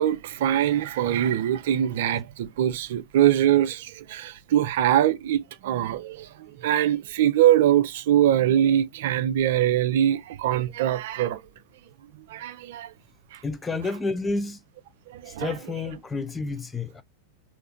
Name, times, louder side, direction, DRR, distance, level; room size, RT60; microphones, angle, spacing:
voice 1, 0.0-11.4 12.3-12.9 13.3-13.4 15.1-15.5, right 11 dB, 55° right, 0.4 m, -23 dB
voice 2, 13.4-14.6 15.3-17.0, left 3 dB, 15° left, 0.4 m, -30 dB
3.3 x 2.5 x 3.5 m
figure-of-eight pair, 90°, 0 cm